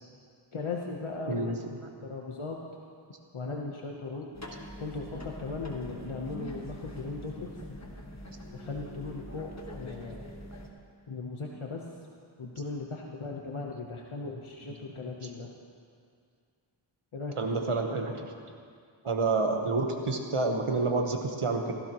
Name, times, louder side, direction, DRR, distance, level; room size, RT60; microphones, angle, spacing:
voice 1, 0.5-1.6 2.0-2.6 3.3-7.8 8.5-10.2 11.1-11.8 12.4-15.5 17.1-17.8, left 3 dB, 75° left, 0 dB, 1.0 m, -38 dB
voice 2, 1.3-1.6 15.2-15.3 17.3-18.3 19.0-21.7, right 3 dB, 90° right, 3 dB, 1.2 m, -28 dB
sound 1, 4.3-10.7, equal, 30° left, 1.5 m, -44 dB
16.0 x 15.0 x 3.0 m, 2.3 s
wide cardioid pair, 40°, 50 cm